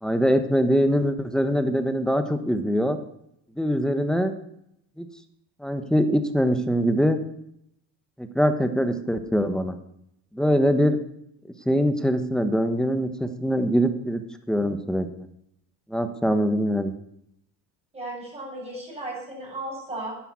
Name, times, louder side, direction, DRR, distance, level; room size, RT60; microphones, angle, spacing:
voice 1, 0.0-3.0 3.6-4.3 5.0-5.1 5.6-7.2 8.2-9.8 10.3-11.0 11.6-14.2 14.5-15.1 15.9-17.0, equal, ahead, 7 dB, 1.1 m, -23 dB
voice 2, 17.9-20.1, right 1 dB, 15° right, -3 dB, 7.5 m, -35 dB
11.0 x 10.0 x 8.6 m, 0.76 s
cardioid pair, 140°, 39 cm